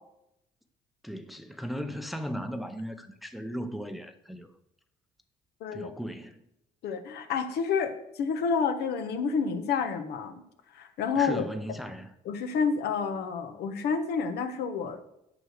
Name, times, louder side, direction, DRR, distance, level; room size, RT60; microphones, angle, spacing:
voice 1, 1.0-4.5 5.7-6.4 11.1-12.1, equal, ahead, 0.7 m, -36 dB
voice 2, 5.6-5.9 6.8-10.3 10.7-11.4 12.2-15.0, left 6 dB, 75° left, 1.2 m, -29 dB
7.7 x 6.3 x 6.5 m
cardioid pair, 110°, 17 cm